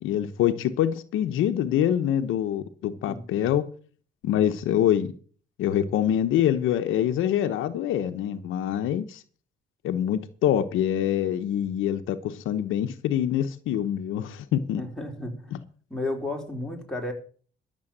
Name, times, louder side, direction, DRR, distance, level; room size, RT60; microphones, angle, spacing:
voice 1, 0.0-3.6 4.2-5.1 5.6-9.2 9.8-14.8, left 10 dB, 85° left, 1.0 m, -25 dB
voice 2, 3.0-3.4 14.7-15.6 15.9-17.1, left 2 dB, 5° left, 4.0 m, -33 dB
13.0 x 7.2 x 7.3 m
cardioid pair, 90°, 20 cm